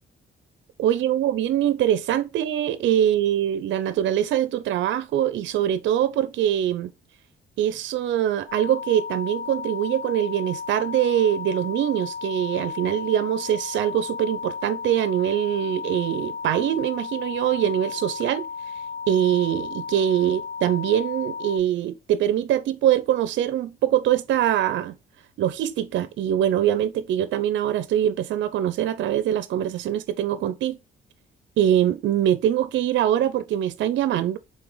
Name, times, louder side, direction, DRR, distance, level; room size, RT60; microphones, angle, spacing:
voice 1, 0.8-6.9 7.6-18.4 19.1-24.9 25.4-30.8 31.6-34.4, right 11 dB, 70° right, 0.5 m, -23 dB
sound 1, 8.5-21.6, left 5 dB, 85° left, 1.1 m, -34 dB
4.1 x 3.0 x 3.7 m
cardioid pair, 90°, 20 cm